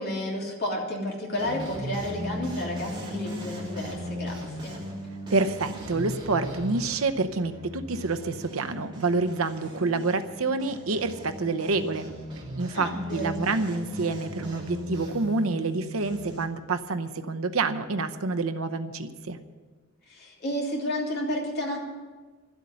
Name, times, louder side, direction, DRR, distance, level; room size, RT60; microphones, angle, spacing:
voice 1, 0.0-4.7 12.7-13.4 20.1-21.8, left 1 dB, 50° left, -2 dB, 3.1 m, -31 dB
sound 1, 1.4-16.4, equal, 20° right, 2.9 m, -38 dB
voice 2, 5.3-12.1 12.6-19.4, right 3 dB, 85° right, 8 dB, 0.8 m, -28 dB
12.5 x 8.2 x 9.5 m, 1.3 s
head